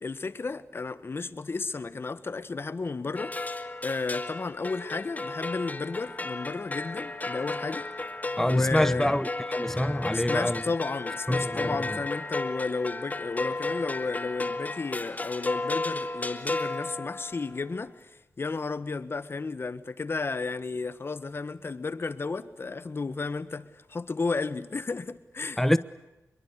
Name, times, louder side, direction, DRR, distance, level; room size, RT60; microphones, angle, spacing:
voice 1, 0.0-3.3 3.8-7.8 8.5-9.1 10.1-25.8, left 4 dB, 45° left, 1.6 m, -33 dB
sound 1, 3.2-17.6, left 2 dB, 30° left, 2.1 m, -34 dB
voice 2, 8.4-10.6 11.3-12.0 25.6-25.8, left 1 dB, 5° left, 1.0 m, -26 dB
26.5 x 23.0 x 8.3 m
cardioid pair, 60°, 5 cm